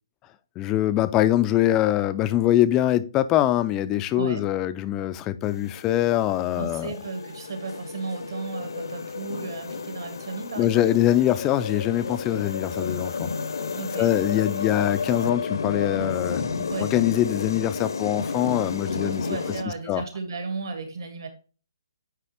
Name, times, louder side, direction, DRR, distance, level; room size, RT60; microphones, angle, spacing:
voice 1, 0.6-6.9 10.6-13.3 14.0-19.3 19.9-20.0, left 13 dB, 15° left, 0.3 m, -23 dB
voice 2, 4.1-4.5 6.5-10.8 13.7-14.2 16.7-16.9 19.0-21.3, right 4 dB, 65° right, 2.1 m, -34 dB
sound 1, 5.4-19.6, left 5 dB, 75° left, 0.8 m, -32 dB
9.3 x 3.3 x 3.4 m
hypercardioid pair, 165°, 2 cm